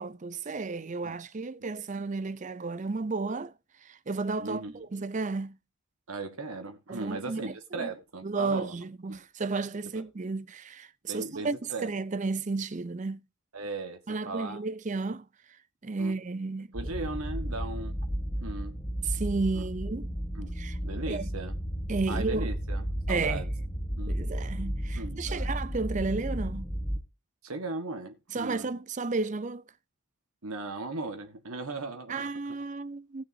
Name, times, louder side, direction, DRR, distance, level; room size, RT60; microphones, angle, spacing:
voice 1, 0.0-3.5 3.8-5.6 6.9-7.9 8.2-11.6 11.8-13.2 14.1-15.3 15.8-16.7 19.0-20.1 20.6-20.8 21.1-21.3 21.9-22.5 23.1-23.4 24.1-26.6 28.3-29.6 32.1-33.2, right 3 dB, 35° right, 0.5 m, -32 dB
voice 2, 4.4-4.8 6.1-8.7 9.1-9.2 9.9-10.1 11.1-11.9 13.5-14.6 16.0-16.1 16.7-18.0 18.4-18.8 19.5-19.7 20.3-20.5 20.8-21.6 22.1-23.5 24.0-24.2 24.9-25.5 27.4-28.7 30.4-32.3, right 3 dB, 85° right, 1.5 m, -37 dB
sound 1, 16.7-27.0, equal, 15° left, 1.3 m, -33 dB
18.0 x 6.5 x 2.7 m
head